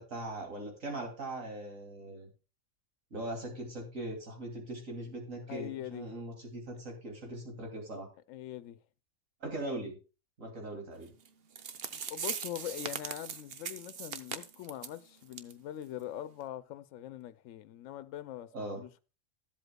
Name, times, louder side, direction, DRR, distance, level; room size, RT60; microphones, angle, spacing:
voice 1, 0.0-2.3 3.1-8.1 9.4-10.0 10.4-11.1 18.5-18.8, right 1 dB, 80° right, 3.0 m, -40 dB
voice 2, 5.5-6.1 8.3-8.8 11.9-19.0, left 12 dB, 75° left, 1.0 m, -42 dB
sound 1, 11.3-11.4 11.6-15.0 15.3-15.5 15.8-15.9 16.4-16.5, right 7 dB, 55° right, 0.9 m, -40 dB
14.0 x 8.0 x 2.2 m
omnidirectional pair, 1.4 m